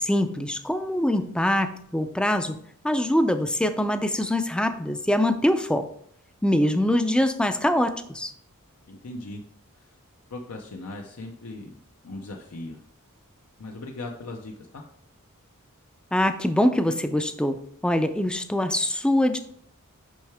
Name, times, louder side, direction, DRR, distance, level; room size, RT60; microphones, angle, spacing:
voice 1, 0.0-2.6 2.8-5.9 6.4-8.3 16.1-19.4, left 1 dB, 5° left, 9 dB, 0.4 m, -23 dB
voice 2, 8.8-9.4 9.8-10.0 10.3-11.8 12.0-12.8 13.6-14.8, left 2 dB, 80° left, 2 dB, 0.7 m, -38 dB
6.2 x 5.6 x 3.4 m, 0.64 s
head